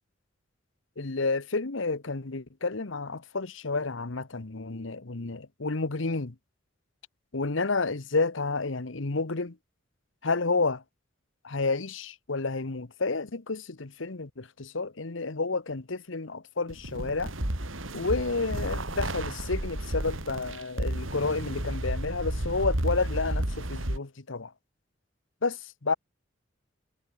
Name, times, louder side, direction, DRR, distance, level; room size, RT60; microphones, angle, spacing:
voice 1, 1.0-6.3 7.3-9.6 10.2-10.8 11.4-17.3 17.9-24.5 25.4-25.9, left 3 dB, 70° left, 1.2 m, -30 dB
sound 1, 16.7-24.0, right 1 dB, 85° right, 3.7 m, -32 dB
head